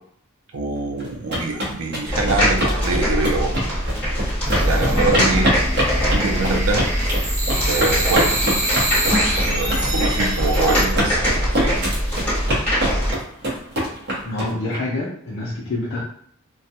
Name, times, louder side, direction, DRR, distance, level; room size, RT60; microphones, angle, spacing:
voice 1, 0.5-3.8 4.5-5.5 6.0-6.8 7.7-8.6 9.3-11.9, right 3 dB, 85° right, 2 dB, 0.5 m, -24 dB
sound 1, 1.0-14.8, equal, 50° right, 0.8 m, -24 dB
sound 2, 2.1-13.1, equal, 10° left, 1.2 m, -22 dB
sound 3, 4.4-10.9, right 1 dB, 35° right, 1.0 m, -25 dB
voice 2, 14.2-16.0, left 2 dB, 55° left, -6 dB, 0.5 m, -27 dB
2.2 x 2.1 x 2.7 m, 0.63 s
head